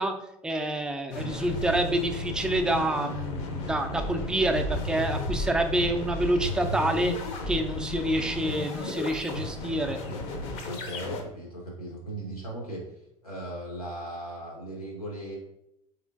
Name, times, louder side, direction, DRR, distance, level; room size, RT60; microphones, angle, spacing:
voice 1, 0.0-7.2 7.5-10.0, right 1 dB, 5° right, 5 dB, 0.3 m, -27 dB
sound 1, 1.1-11.2, left 2 dB, 60° left, 0.7 m, -33 dB
voice 2, 10.6-12.8 13.2-15.4, right 1 dB, 90° left, -1 dB, 1.1 m, -37 dB
3.6 x 3.3 x 2.4 m, 0.81 s
figure-of-eight pair, 80°, 19 cm